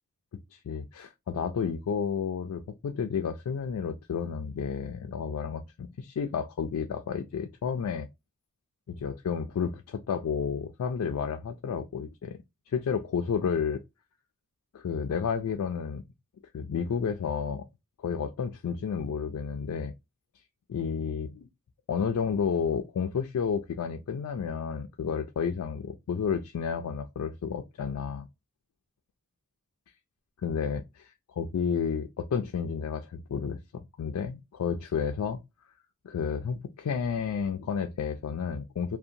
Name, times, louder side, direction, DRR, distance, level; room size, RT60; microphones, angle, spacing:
voice 1, 0.5-8.1 8.9-12.4 12.7-13.8 14.7-16.0 16.5-17.7 18.0-19.9 20.7-21.5 21.9-28.3 30.4-35.4 36.0-39.0, left 6 dB, 85° left, 0.3 m, -31 dB
2.7 x 2.1 x 2.5 m
head